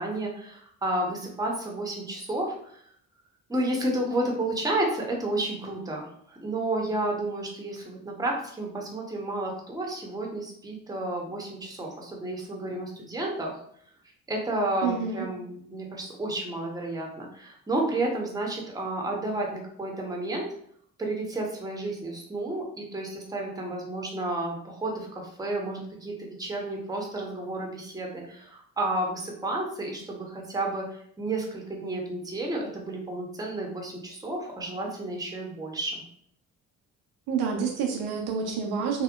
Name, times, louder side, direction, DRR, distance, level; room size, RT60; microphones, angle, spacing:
voice 1, 0.0-2.8 3.5-13.5 14.3-20.5 21.0-36.0, right 2 dB, 10° right, 0 dB, 0.7 m, -31 dB
voice 2, 14.8-15.2 37.3-39.0, right 6 dB, 65° right, 1 dB, 0.6 m, -28 dB
2.7 x 2.0 x 2.3 m, 0.65 s
hypercardioid pair, 50°, 41 cm